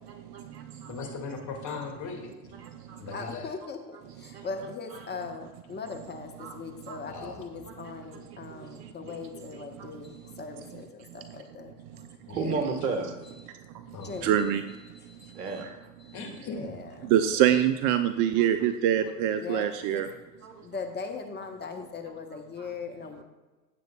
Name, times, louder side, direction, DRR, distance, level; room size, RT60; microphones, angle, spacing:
voice 1, 0.1-1.1 2.6-3.2 4.3-4.5 6.4-6.6 6.9-7.0 7.7-9.2 9.5-9.9 12.3-13.2 15.3-15.9 18.4-18.5 20.4-20.7 22.6-22.7, right 4 dB, 75° right, 6 dB, 1.7 m, -36 dB
voice 2, 0.9-2.5 3.0-3.5 7.1-7.5 12.3-12.5 13.9-14.4 16.1-16.8 17.3-17.4, left 4 dB, 35° left, 2 dB, 2.4 m, -39 dB
voice 3, 3.1-12.4 14.0-14.5 14.9-15.7 16.0-16.2 16.5-17.1 18.3-18.4 19.4-20.1 20.6-23.2, left 4 dB, 20° left, 4 dB, 1.2 m, -40 dB
voice 4, 14.2-14.6 17.1-20.1, right 10 dB, 40° right, 10 dB, 0.7 m, -24 dB
16.5 x 7.9 x 2.4 m, 1.2 s
hypercardioid pair, 90°, 48 cm